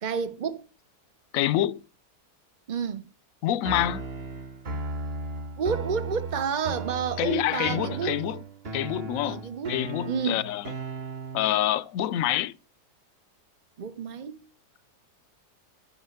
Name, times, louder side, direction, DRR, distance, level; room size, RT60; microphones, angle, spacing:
voice 1, 0.0-0.6 2.7-3.0 5.6-8.2 9.2-9.8 10.1-10.4 13.8-14.4, right 6 dB, 55° right, 0.5 m, -30 dB
voice 2, 1.3-1.8 3.4-4.0 7.2-8.4 8.7-10.7 11.3-12.5, left 13 dB, 65° left, 0.9 m, -27 dB
sound 1, 3.6-11.6, right 3 dB, 40° right, 1.2 m, -36 dB
12.0 x 6.1 x 5.7 m
omnidirectional pair, 1.9 m